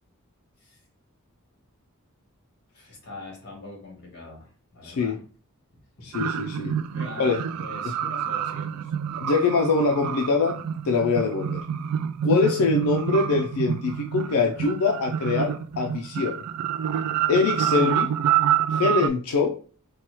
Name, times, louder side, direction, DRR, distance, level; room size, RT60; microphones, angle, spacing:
voice 1, 2.7-5.2 6.0-6.1 6.9-8.9, left 2 dB, 50° left, -1 dB, 1.9 m, -42 dB
voice 2, 4.8-5.2 6.0-6.7 7.2-7.4 9.2-10.6 10.8-11.6 12.2-16.4 17.3-18.1 18.7-19.6, left 4 dB, 80° left, 2 dB, 0.4 m, -23 dB
sound 1, 6.1-19.1, right 9 dB, 90° right, 0.3 m, -27 dB
4.3 x 2.3 x 2.9 m, 0.39 s
head